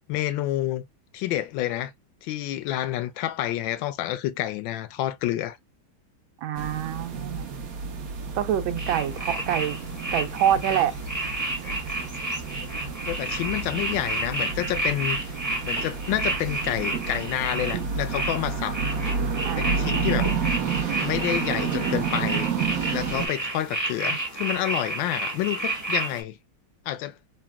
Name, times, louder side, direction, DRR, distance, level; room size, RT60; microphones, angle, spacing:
voice 1, 0.1-0.8 1.1-1.9 2.2-5.6 13.1-15.3 15.6-18.8 19.6-20.3 21.0-22.5 22.9-26.4 26.9-27.1, left 13 dB, 75° left, 1.3 m, -29 dB
voice 2, 6.4-7.5 8.3-9.8 10.1-10.9 19.4-19.7, right 10 dB, 80° right, 1.4 m, -26 dB
sound 1, 6.5-23.3, right 5 dB, 60° right, 1.0 m, -30 dB
sound 2, 8.8-26.2, right 2 dB, 15° right, 0.7 m, -31 dB
4.0 x 2.1 x 2.2 m
omnidirectional pair, 2.1 m